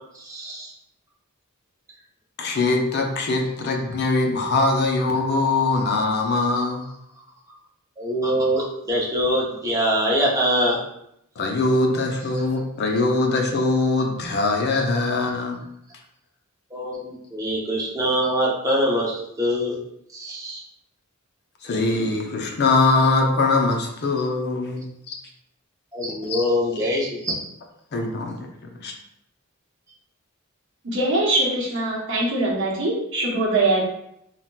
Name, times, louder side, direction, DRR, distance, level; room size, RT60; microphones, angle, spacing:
voice 1, 0.2-0.7 8.0-10.8 16.7-19.8 20.1-20.6 25.9-27.4, equal, 15° right, -4 dB, 0.6 m, -23 dB
voice 2, 2.4-6.9 11.4-15.6 21.6-25.2 26.2-26.5 27.9-28.5 28.8-28.9, left 3 dB, 50° left, 2 dB, 0.5 m, -22 dB
voice 3, 30.8-33.8, right 2 dB, 60° right, -4 dB, 0.9 m, -22 dB
3.9 x 2.1 x 2.2 m, 0.76 s
head